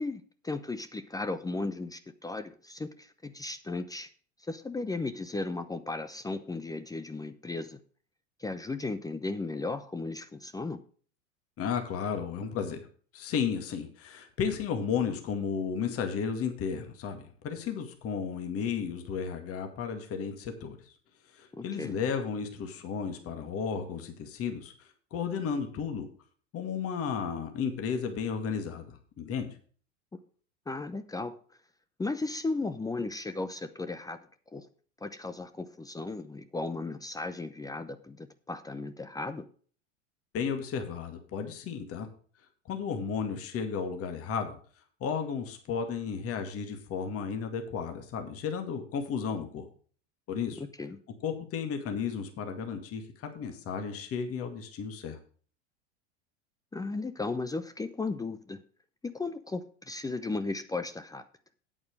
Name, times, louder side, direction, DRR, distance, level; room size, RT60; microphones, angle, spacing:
voice 1, 0.0-4.1 4.4-7.8 8.4-10.8 21.5-22.0 30.1-30.2 30.7-31.4 32.0-34.3 34.5-34.7 35.0-39.5 50.6-51.0 56.7-58.6 59.0-61.2, left 3 dB, 10° left, 11 dB, 0.7 m, -35 dB
voice 2, 11.6-12.8 13.1-20.9 21.3-24.7 25.1-26.1 26.5-29.5 40.3-42.1 42.7-44.6 45.0-49.7 50.3-50.6 51.2-55.2, left 6 dB, 40° left, 5 dB, 2.2 m, -33 dB
8.7 x 8.7 x 4.8 m, 0.43 s
hypercardioid pair, 95°, 35 cm